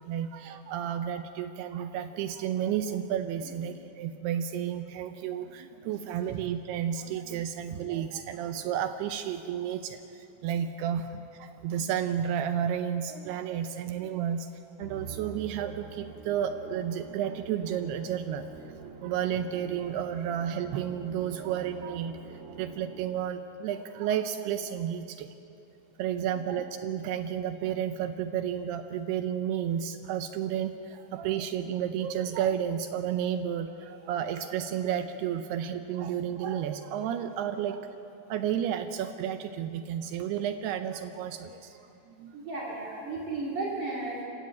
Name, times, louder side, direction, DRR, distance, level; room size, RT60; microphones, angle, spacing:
voice 1, 0.0-25.3 26.0-38.0 38.3-42.3, right 9 dB, 80° right, 8 dB, 2.6 m, -32 dB
Musical instrument, 14.8-23.3, right 5 dB, 30° right, 1.4 m, -46 dB
voice 2, 42.3-44.2, right 3 dB, 50° right, -4 dB, 3.9 m, -34 dB
27.0 x 14.0 x 8.7 m, 2.8 s
omnidirectional pair, 5.0 m